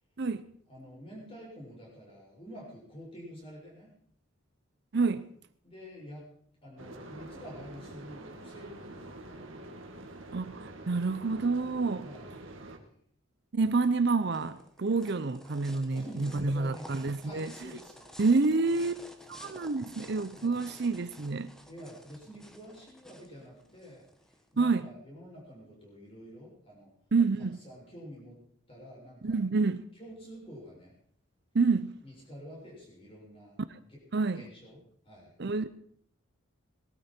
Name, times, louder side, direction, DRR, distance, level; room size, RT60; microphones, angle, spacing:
voice 1, 0.7-3.9 5.6-6.3 6.6-10.4 12.0-12.9 15.9-18.3 18.6-18.9 19.2-19.4 20.3-20.7 21.6-26.9 27.4-28.4 28.7-29.4 29.9-30.9 32.0-33.5 33.9-34.0 34.3-35.4, equal, 25° left, 6.7 m, -48 dB
voice 2, 4.9-5.3 10.3-12.1 13.5-17.5 18.2-19.0 19.3-21.5 24.6-24.8 27.1-27.6 29.2-29.8 31.5-32.0 34.1-34.4 35.4-35.7, right 4 dB, 55° right, 0.6 m, -28 dB
sound 1, 6.8-12.8, right 1 dB, 70° right, 1.8 m, -46 dB
sound 2, 13.8-24.7, equal, 5° left, 1.1 m, -52 dB
19.0 x 12.5 x 4.4 m
head